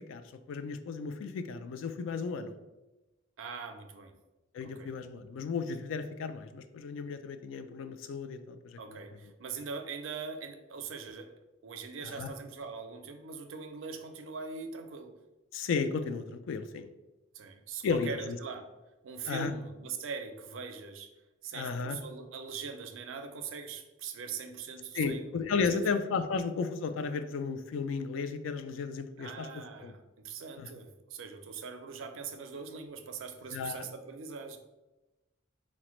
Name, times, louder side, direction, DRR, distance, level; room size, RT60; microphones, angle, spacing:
voice 1, 0.5-2.5 4.5-8.8 12.2-12.3 15.5-16.9 17.8-18.4 19.3-19.5 21.5-22.0 24.9-29.5 29.8-29.9 30.6-30.7 33.5-33.9, left 5 dB, 70° left, 9 dB, 0.3 m, -34 dB
voice 2, 3.4-4.2 4.6-4.9 8.8-15.1 17.3-18.7 19.0-21.1 21.4-25.4 25.7-25.8 29.2-34.6, right 5 dB, 75° right, 7 dB, 0.4 m, -42 dB
4.0 x 2.1 x 3.0 m, 1.0 s
head